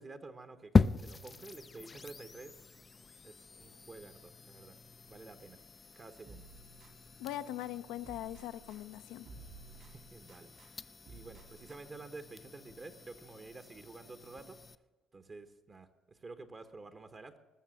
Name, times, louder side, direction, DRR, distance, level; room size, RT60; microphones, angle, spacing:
voice 1, 0.0-2.6 3.2-4.8 5.1-5.6 5.9-6.4 9.8-14.6 15.1-17.4, right 3 dB, 35° right, 8 dB, 1.1 m, -50 dB
Stereo switched on, 0.8-14.8, left 4 dB, 30° left, 0.4 m, -38 dB
sound 1, 6.3-7.7 8.0-10.7 11.1-12.1, right 3 dB, 60° right, 3.5 m, -55 dB
voice 2, 7.2-9.3, left 13 dB, 80° left, 12 dB, 0.6 m, -41 dB
20.0 x 6.7 x 7.7 m, 1.1 s
supercardioid pair, 80°, 0 cm